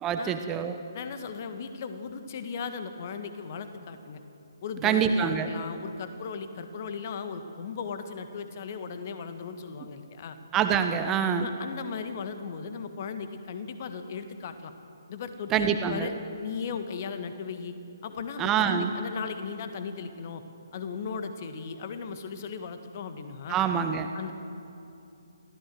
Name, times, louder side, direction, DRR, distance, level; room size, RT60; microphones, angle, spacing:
voice 1, 0.0-0.8 4.8-5.5 10.5-11.5 15.5-16.1 18.4-18.9 23.5-24.1, right 8 dB, 15° right, 7 dB, 1.0 m, -25 dB
voice 2, 0.9-4.2 4.6-10.4 11.4-14.7 15.1-16.1 16.4-17.7 18.0-20.4 20.7-23.6 24.1-24.3, left 6 dB, 35° left, 8 dB, 1.6 m, -37 dB
24.0 x 15.5 x 7.8 m, 2.7 s
figure-of-eight pair, 140°, 2 cm